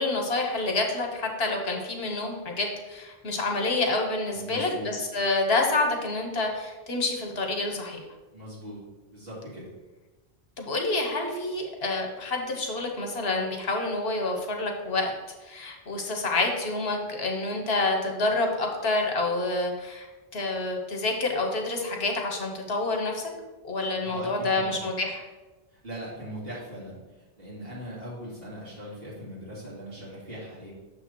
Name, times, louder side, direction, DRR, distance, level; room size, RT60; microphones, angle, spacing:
voice 1, 0.0-8.0 10.6-15.1 15.4-20.1 20.3-23.3 23.6-25.2, left 2 dB, 75° left, 2 dB, 1.2 m, -28 dB
voice 2, 4.3-4.9 8.3-8.8 9.1-9.7 24.0-24.8 25.7-30.7, equal, 65° right, -8 dB, 2.4 m, -40 dB
6.8 x 3.3 x 6.1 m, 1.2 s
omnidirectional pair, 1.1 m